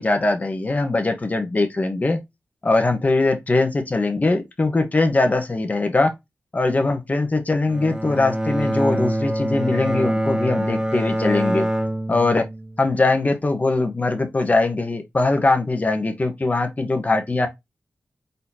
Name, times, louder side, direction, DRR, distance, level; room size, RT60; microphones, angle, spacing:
voice 1, 0.0-2.2 2.6-6.1 6.5-11.7 12.1-12.4 12.8-17.5, left 2 dB, 35° left, 1.2 m, -21 dB
Bowed string instrument, 7.7-12.9, right 1 dB, 15° right, 0.7 m, -25 dB
4.2 x 4.0 x 2.7 m
wide cardioid pair, 75°, 5 cm